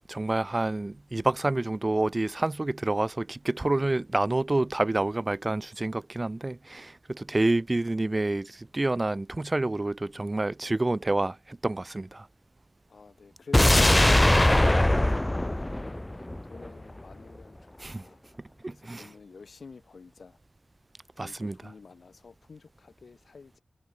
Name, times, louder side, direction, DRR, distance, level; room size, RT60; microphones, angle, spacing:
voice 1, 0.1-12.3 17.8-18.0 18.6-19.1 21.2-21.6, right 2 dB, 30° right, 0.7 m, -28 dB
voice 2, 12.9-18.2 18.7-20.4 21.2-23.6, left 4 dB, 75° left, 7.0 m, -49 dB
sound 1, 13.5-16.7 17.0-17.1, left 1 dB, 20° left, 0.7 m, -21 dB
cardioid pair, 55°, 0 cm